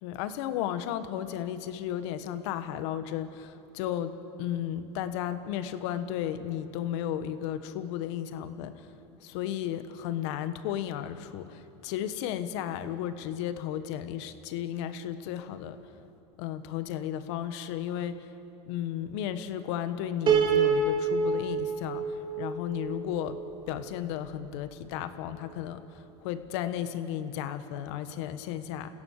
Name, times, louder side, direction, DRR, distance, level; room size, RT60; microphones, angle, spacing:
voice 1, 0.0-8.7 9.2-15.8 16.4-18.3 18.7-22.0 22.4-23.4 23.7-25.8 26.2-28.9, left 10 dB, 70° left, 10 dB, 1.5 m, -34 dB
Piano, 20.3-23.5, right 5 dB, 30° right, 2.6 m, -27 dB
29.5 x 16.5 x 6.7 m, 2.8 s
supercardioid pair, 110°, 15 cm